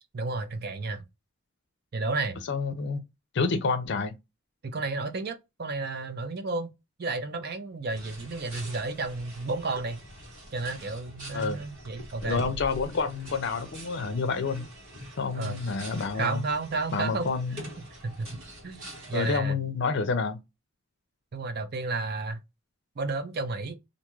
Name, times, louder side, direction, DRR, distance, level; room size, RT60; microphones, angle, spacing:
voice 1, 0.1-1.0 1.9-2.4 4.6-6.7 7.0-10.0 10.5-12.4 15.3-15.6 16.1-17.3 18.0-19.6 21.3-22.4 23.0-23.8, right 3 dB, 50° right, 0.5 m, -32 dB
voice 2, 2.5-3.0 3.3-4.1 11.3-11.6 12.2-14.7 15.2-16.4 16.9-17.6 19.1-20.4, left 4 dB, 55° left, 0.5 m, -28 dB
sound 1, 7.9-19.4, right 1 dB, 70° right, 1.6 m, -45 dB
2.6 x 2.3 x 3.0 m
head